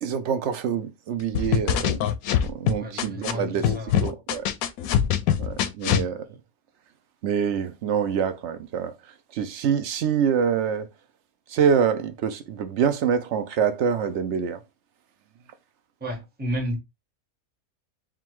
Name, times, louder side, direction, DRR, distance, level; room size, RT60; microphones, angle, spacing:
voice 1, 0.0-2.0 2.4-3.7 4.0-4.4 5.4-6.2 7.2-8.9 9.3-10.9 11.5-14.6, right 7 dB, 65° right, 0.8 m, -25 dB
sound 1, 1.3-3.3 3.6-6.1, left 9 dB, 85° left, 1.0 m, -23 dB
voice 2, 2.8-4.0 5.3-5.4 16.0-16.8, equal, 10° right, 0.8 m, -32 dB
3.7 x 2.3 x 4.4 m
omnidirectional pair, 1.5 m